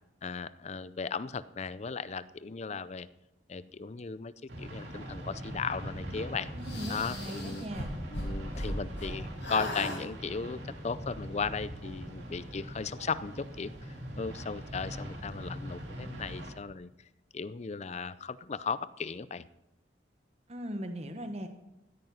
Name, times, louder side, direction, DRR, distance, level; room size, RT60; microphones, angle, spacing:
voice 1, 0.2-3.1 3.5-4.3 4.6-6.5 6.9-7.6 8.1-16.9 17.3-19.4, left 5 dB, 35° left, 16 dB, 0.5 m, -36 dB
sound 1, 4.5-16.5, equal, 75° right, 2.6 m, -42 dB
voice 2, 6.5-7.9 20.5-21.5, equal, 35° right, 7 dB, 1.0 m, -39 dB
sound 2, 6.6-9.1 9.4-10.0, left 1 dB, 75° left, 5.1 m, -37 dB
15.5 x 9.2 x 5.5 m, 0.91 s
head